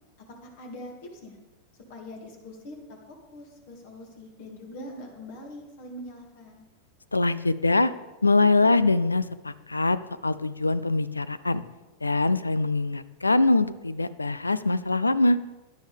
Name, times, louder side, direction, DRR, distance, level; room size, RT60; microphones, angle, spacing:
voice 1, 0.4-1.4 1.9-6.7, left 1 dB, 50° left, 1 dB, 2.4 m, -43 dB
voice 2, 7.1-7.9 8.2-10.0 10.2-11.6 12.0-15.4, left 2 dB, 80° left, 16 dB, 0.4 m, -23 dB
16.5 x 10.5 x 3.5 m, 1.1 s
figure-of-eight pair, 90°, 0 cm